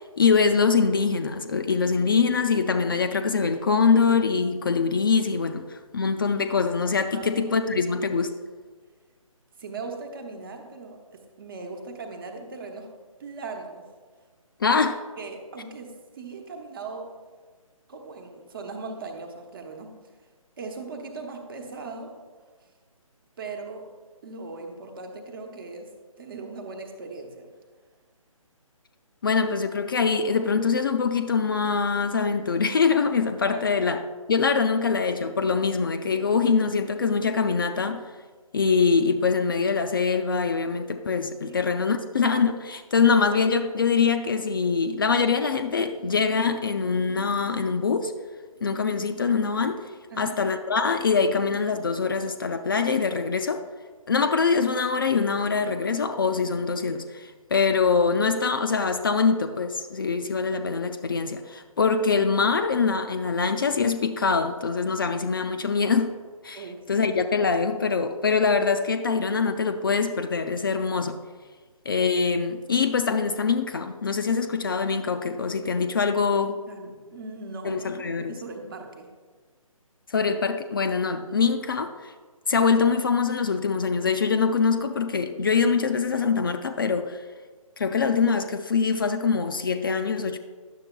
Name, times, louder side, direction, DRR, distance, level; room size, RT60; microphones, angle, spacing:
voice 1, 0.0-8.3 14.6-15.0 29.2-34.0 34.3-38.0 38.5-48.1 48.6-49.8 50.2-53.6 54.1-66.1 66.4-71.2 71.9-76.5 77.6-78.4 80.1-82.1 82.5-87.2 87.8-90.4, left 5 dB, 40° left, 7 dB, 0.4 m, -24 dB
voice 2, 7.1-8.1 9.6-12.9 13.2-13.9 15.2-17.1 17.9-20.0 20.6-22.2 23.4-23.9 24.2-25.9 26.2-27.5 33.5-33.9 41.5-41.7 50.1-50.4 66.5-67.0 76.7-79.1, right 3 dB, 40° right, 3 dB, 1.0 m, -39 dB
10.5 x 6.9 x 2.2 m, 1.4 s
figure-of-eight pair, 150°, 18 cm